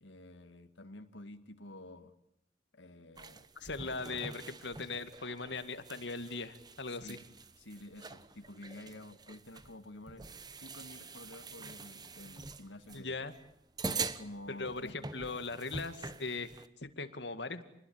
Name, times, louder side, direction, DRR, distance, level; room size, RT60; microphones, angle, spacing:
voice 1, 0.0-2.1 2.7-3.5 7.0-7.2 7.6-10.3 10.6-13.3 14.0-15.1, left 1 dB, 85° left, 8 dB, 2.0 m, -50 dB
sound 1, 3.2-16.7, right 4 dB, 20° right, 1.1 m, -45 dB
voice 2, 3.6-7.2 12.9-13.3 14.5-16.5 16.8-17.6, left 3 dB, 70° left, 9 dB, 2.3 m, -39 dB
28.5 x 21.0 x 8.9 m, 0.77 s
head